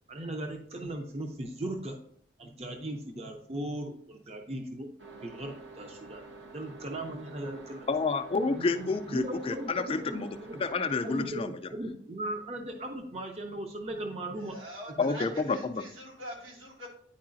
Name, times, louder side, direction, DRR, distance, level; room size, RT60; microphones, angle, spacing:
voice 1, 0.1-2.0 2.4-4.9 5.2-6.2 6.5-7.9 8.5-10.6 11.0-14.6 15.0-15.2, right 1 dB, 35° right, 0.6 m, -38 dB
sound 1, 5.0-11.3, right 3 dB, 65° right, 1.0 m, -48 dB
voice 2, 7.9-11.5 15.0-15.8, left 4 dB, 30° left, 0.3 m, -29 dB
voice 3, 14.5-15.3 15.5-16.9, equal, 85° right, 2.1 m, -43 dB
9.5 x 4.7 x 2.5 m
head